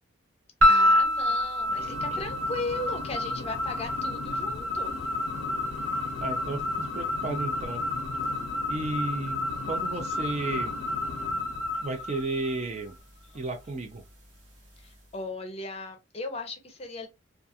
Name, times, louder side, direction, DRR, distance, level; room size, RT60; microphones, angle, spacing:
sound 1, 0.6-12.9, left 1 dB, 65° right, 1.3 m, -28 dB
voice 1, 0.7-4.9 11.7-11.8 13.3-13.4 14.8-17.1, left 2 dB, 30° left, 0.6 m, -36 dB
voice 2, 1.7-2.2 6.2-7.8 8.7-10.7 11.8-13.0 13.3-14.0, right 2 dB, 35° right, 0.4 m, -33 dB
sound 2, 1.8-11.8, left 3 dB, 80° left, 0.5 m, -40 dB
2.3 x 2.3 x 2.6 m
head